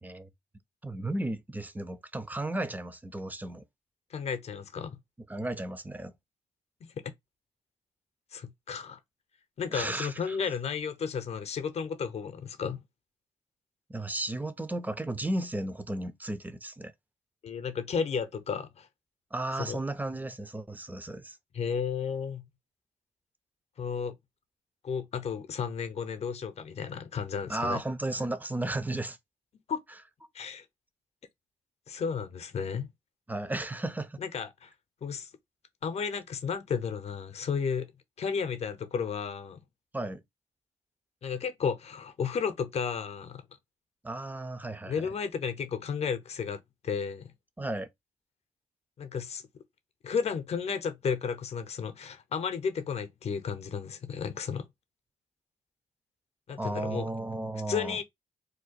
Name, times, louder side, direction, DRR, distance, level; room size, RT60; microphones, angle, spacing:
voice 1, 0.8-3.6 5.3-6.2 9.7-10.4 13.9-16.9 19.3-21.4 27.5-29.2 33.3-34.2 39.9-40.2 44.0-45.1 47.6-47.9 56.6-58.0, right 2 dB, 15° right, 0.5 m, -34 dB
voice 2, 4.1-5.0 6.8-7.1 8.3-9.0 9.6-12.8 17.4-18.9 19.6-19.8 21.5-22.4 23.8-24.2 24.8-27.8 29.7-29.8 30.3-30.6 31.9-32.9 34.2-34.7 35.0-35.3 35.8-37.9 38.2-39.6 41.2-43.4 44.9-47.3 49.0-49.4 50.0-54.7 56.5-57.1 57.7-58.0, left 6 dB, 55° left, 0.7 m, -33 dB
2.8 x 2.2 x 4.1 m
cardioid pair, 70°, 13 cm